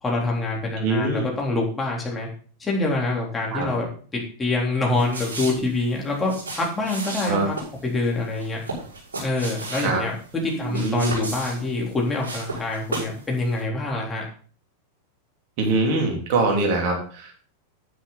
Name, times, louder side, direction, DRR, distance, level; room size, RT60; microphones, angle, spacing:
voice 1, 0.0-2.3 2.6-3.9 4.4-7.6 7.8-8.6 9.2-14.2, left 2 dB, 15° left, -2 dB, 3.7 m, -25 dB
voice 2, 0.8-1.3 3.5-3.7 7.3-7.5 9.8-10.0 10.6-11.1 15.6-17.3, right 3 dB, 45° right, 1 dB, 2.9 m, -23 dB
sound 1, 4.9-13.2 13.5-13.6, right 2 dB, 70° right, 6.2 m, -34 dB
9.8 x 9.7 x 4.1 m, 0.42 s
figure-of-eight pair, 90°, 0 cm